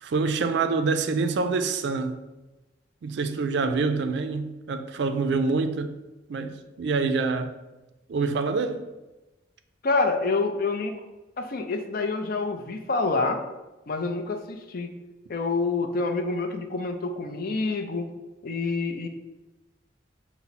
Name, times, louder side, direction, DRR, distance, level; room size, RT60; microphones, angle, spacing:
voice 1, 0.0-2.2 3.0-6.0 6.3-7.5 8.1-8.8, right 4 dB, 65° right, 0.3 m, -26 dB
voice 2, 9.8-11.0 11.4-13.4 13.9-14.9 15.3-18.1 18.4-19.1, left 3 dB, 55° left, 0.5 m, -27 dB
5.6 x 2.0 x 4.0 m
head